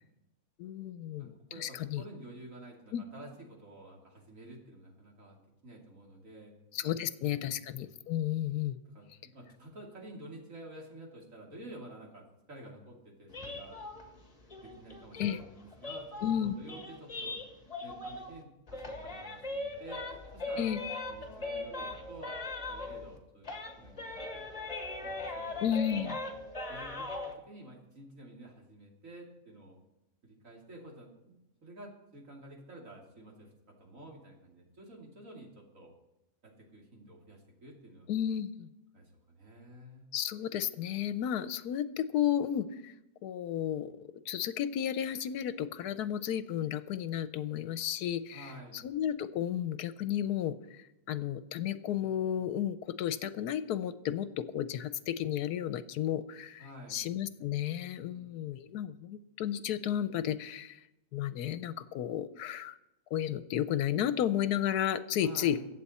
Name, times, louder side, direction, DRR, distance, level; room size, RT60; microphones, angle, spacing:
voice 1, 0.6-2.0 2.9-3.0 6.7-8.8 15.2-15.4 16.2-16.6 20.6-20.8 25.6-26.2 38.1-38.7 40.1-42.9 43.2-44.0 44.3-60.8 61.1-62.8 63.1-65.6, left 10 dB, 80° left, 13 dB, 1.2 m, -33 dB
voice 2, 1.2-6.5 6.8-8.0 8.9-13.8 14.6-15.5 15.8-17.4 17.8-20.7 21.1-22.3 22.7-24.4 25.0-26.1 26.7-29.7 30.2-31.4 31.6-33.5 33.8-35.9 36.4-38.1 38.9-40.1 48.3-48.9 56.6-57.1 58.1-58.7 65.2-65.6, right 1 dB, 55° right, -1 dB, 3.0 m, -50 dB
sound 1, 13.3-18.4 18.7-23.2 23.4-27.3, left 2 dB, 25° left, 1.8 m, -40 dB
23.0 x 8.3 x 4.2 m, 0.93 s
omnidirectional pair, 1.7 m